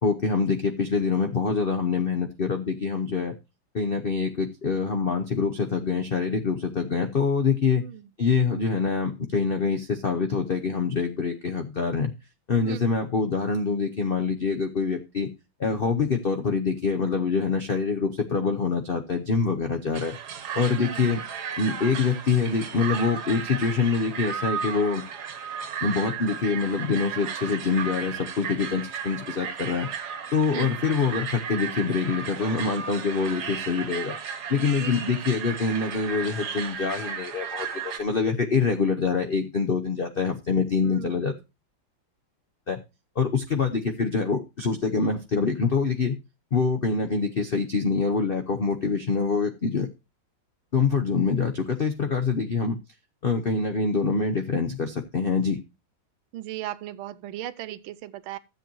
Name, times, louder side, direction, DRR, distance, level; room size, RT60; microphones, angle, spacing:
voice 1, 0.0-3.4 3.7-7.8 8.2-12.1 12.5-15.3 15.6-20.2 20.5-21.2 21.6-25.0 25.8-29.9 30.3-34.1 34.5-41.3 42.7-42.8 43.2-46.2 46.5-49.9 50.7-52.8 53.2-55.6, left 5 dB, 65° left, 0.5 m, -25 dB
voice 2, 7.8-8.1 12.6-13.0 20.7-21.0 30.5-30.8 34.8-35.2 40.8-41.3 56.3-58.4, right 13 dB, 85° right, 1.5 m, -37 dB
sound 1, 19.9-38.0, right 7 dB, 60° right, 1.4 m, -34 dB
13.0 x 7.8 x 3.0 m
omnidirectional pair, 2.2 m